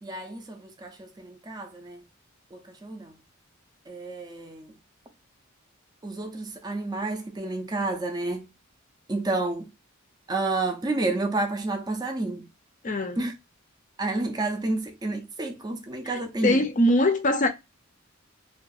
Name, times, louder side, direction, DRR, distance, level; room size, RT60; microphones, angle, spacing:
voice 1, 0.0-2.0 2.5-3.2 3.9-4.7 6.0-8.5 9.1-9.7 10.3-12.5 13.2-13.3 14.0-16.6, right 2 dB, 20° right, 0.5 m, -30 dB
voice 2, 12.8-13.2 16.1-17.5, left 1 dB, 35° left, 0.5 m, -22 dB
2.3 x 2.3 x 2.5 m
head